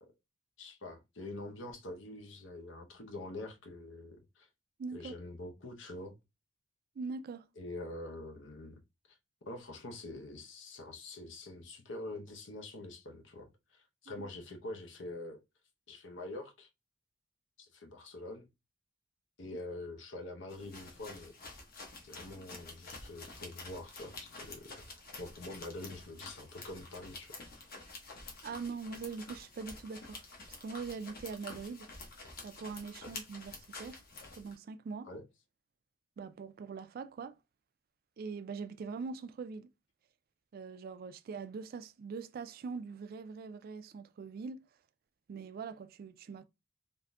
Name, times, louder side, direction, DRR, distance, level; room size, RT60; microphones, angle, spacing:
voice 1, 0.6-4.5 4.9-6.2 7.6-8.8 9.1-9.2 9.5-15.4 15.9-16.7 17.6-18.5 19.4-21.3 22.0-27.3 33.0-33.1 35.0-35.2, left 2 dB, 75° left, 0.8 m, -45 dB
voice 2, 4.8-5.2 7.0-7.5 14.2-14.3 22.4-22.5 28.4-31.9 32.4-34.0 34.4-35.1 36.2-37.4 38.2-39.7 40.5-44.6 45.3-46.4, right 5 dB, 50° right, 0.3 m, -42 dB
sound 1, 20.5-34.6, left 3 dB, 50° left, 0.9 m, -49 dB
3.6 x 2.6 x 2.2 m
head